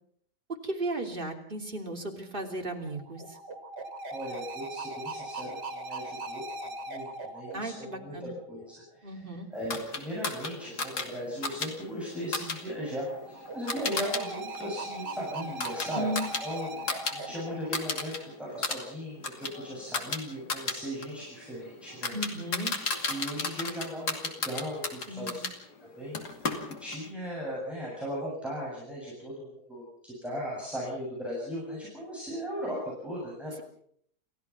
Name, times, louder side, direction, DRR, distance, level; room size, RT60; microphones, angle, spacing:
voice 1, 0.6-3.2 7.5-8.3 9.0-9.5 15.9-16.3 17.2-17.3 22.1-22.7 25.1-25.4, right 1 dB, 30° right, 3 dB, 3.1 m, -35 dB
sound 1, 2.3-8.7 12.3-18.7, right 2 dB, 85° right, 2.9 m, -40 dB
voice 2, 4.1-6.4 6.9-16.1 16.4-22.2 23.1-25.4 26.0-26.2 26.8-32.8 33.0-33.6, equal, ahead, -6 dB, 7.6 m, -37 dB
sound 2, 9.7-14.2 14.5-17.2 17.5-18.2 18.5-25.6 26.1-27.1, left 4 dB, 75° left, 3.0 m, -34 dB
28.5 x 15.5 x 5.9 m, 0.67 s
omnidirectional pair, 1.7 m